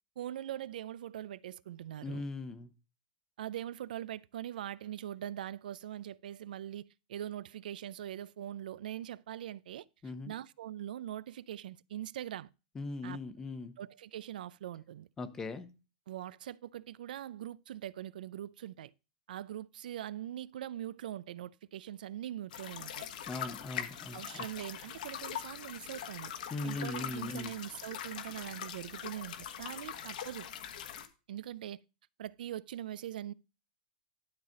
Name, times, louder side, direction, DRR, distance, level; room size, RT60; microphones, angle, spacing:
voice 1, 0.2-2.2 3.4-9.9 10.3-12.5 13.0-13.2 13.8-15.1 16.1-18.9 19.3-23.1 24.1-26.3 26.6-30.5 31.3-31.8 32.2-33.3, right 12 dB, 80° right, 0.4 m, -42 dB
voice 2, 2.0-2.7 10.0-10.3 12.7-13.7 15.2-15.7 23.2-24.5 26.5-27.5, left 3 dB, 10° left, 0.8 m, -40 dB
sound 1, 22.5-31.1, left 9 dB, 65° left, 1.5 m, -42 dB
12.0 x 4.1 x 6.4 m
supercardioid pair, 175°, 5 cm